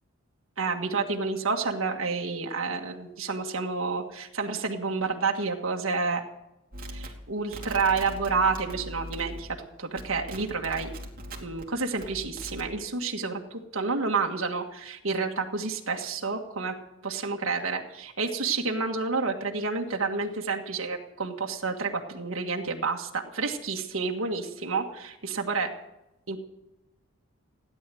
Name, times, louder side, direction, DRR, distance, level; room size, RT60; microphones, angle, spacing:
voice 1, 0.6-6.2 6.9-10.9 11.4-16.7 17.0-25.7 26.3-26.4, right 4 dB, 70° right, 2 dB, 1.7 m, -29 dB
sound 1, 6.7-9.6 9.9-11.6 12.0-12.7, equal, 45° right, 2.7 m, -40 dB
17.0 x 10.5 x 7.7 m, 0.93 s
head